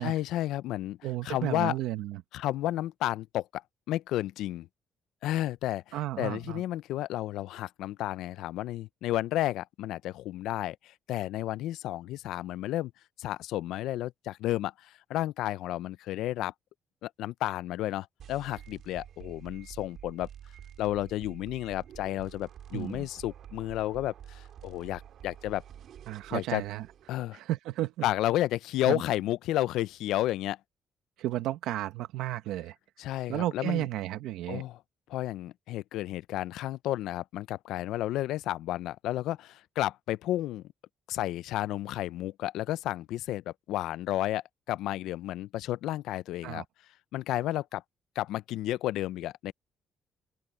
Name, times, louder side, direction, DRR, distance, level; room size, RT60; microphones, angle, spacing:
voice 1, 0.0-1.0 1.2-1.8 2.3-3.6 3.9-4.7 5.2-12.9 13.2-16.5 17.0-20.3 20.8-25.6 26.3-26.6 27.1-27.4 28.0-30.6 33.0-33.9 34.5-34.8 35.1-40.6 41.1-46.6 47.1-47.8 48.2-49.5, left 14 dB, 85° left, 0.4 m, -32 dB
voice 2, 1.0-2.2 5.9-6.6 22.7-23.1 26.1-26.9 27.3-28.0 28.9-29.0 31.2-32.7 33.3-34.6 46.4-46.6, right 14 dB, 90° right, 1.4 m, -33 dB
sound 1, 18.2-27.2, right 9 dB, 65° right, 2.6 m, -49 dB
open air
cardioid pair, 100°, 0 cm